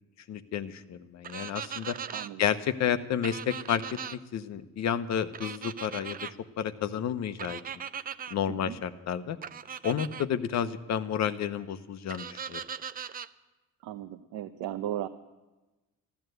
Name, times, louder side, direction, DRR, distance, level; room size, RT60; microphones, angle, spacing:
voice 1, 0.3-2.0 2.4-7.6 8.3-9.4 9.8-12.6, left 8 dB, 50° left, 11 dB, 0.9 m, -31 dB
sound 1, 1.2-2.3 3.2-4.2 5.3-6.3 7.4-8.3 9.4-10.3 12.1-13.3, right 7 dB, 25° right, 0.4 m, -39 dB
voice 2, 2.1-2.4 8.5-8.8 13.8-15.1, right 12 dB, 80° right, 6 dB, 0.8 m, -36 dB
14.0 x 12.5 x 7.9 m, 1.1 s
cardioid pair, 130°, 35 cm